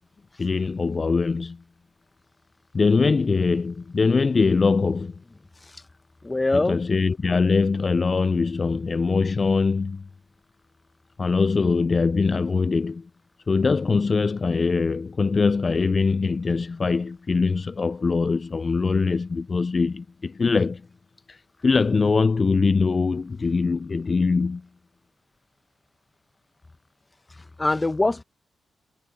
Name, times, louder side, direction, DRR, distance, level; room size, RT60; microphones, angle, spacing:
voice 1, 0.4-1.6 2.7-5.2 6.5-10.1 11.2-13.1 13.5-20.8 21.3-24.6, left 4 dB, 40° left, 0.3 m, -22 dB
voice 2, 6.2-6.8 27.6-28.2, left 2 dB, 20° left, 0.8 m, -23 dB
cardioid pair, 80°, 0 cm